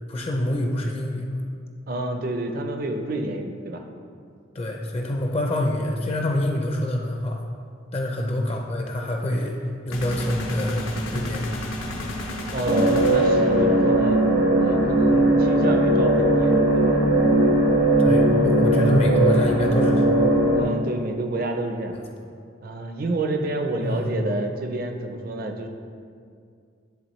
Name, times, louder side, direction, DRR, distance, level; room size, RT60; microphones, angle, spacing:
voice 1, 0.1-1.4 4.5-7.4 7.9-9.6 9.9-11.6 18.0-20.1 21.9-22.0 23.8-24.1, left 1 dB, 30° left, 1 dB, 0.5 m, -25 dB
voice 2, 1.9-3.8 8.2-8.4 12.5-14.2 14.6-17.0 20.6-21.9 22.6-25.7, right 2 dB, 45° right, 5 dB, 0.5 m, -29 dB
sound 1, 9.9-13.9, left 1 dB, 85° left, 0.8 m, -32 dB
sound 2, 12.6-20.6, right 1 dB, 85° right, 1.3 m, -19 dB
10.5 x 3.8 x 3.1 m, 2.3 s
head